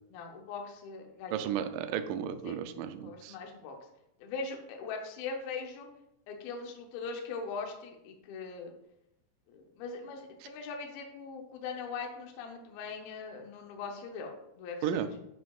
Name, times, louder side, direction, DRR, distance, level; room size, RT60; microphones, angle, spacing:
voice 1, 0.1-1.5 2.4-2.6 3.0-3.8 4.2-5.9 6.3-8.7 9.5-15.2, left 4 dB, 75° left, 2 dB, 2.7 m, -41 dB
voice 2, 1.3-3.4 14.8-15.1, right 9 dB, 90° right, 8 dB, 1.9 m, -33 dB
11.5 x 5.1 x 2.4 m, 0.81 s
omnidirectional pair, 4.4 m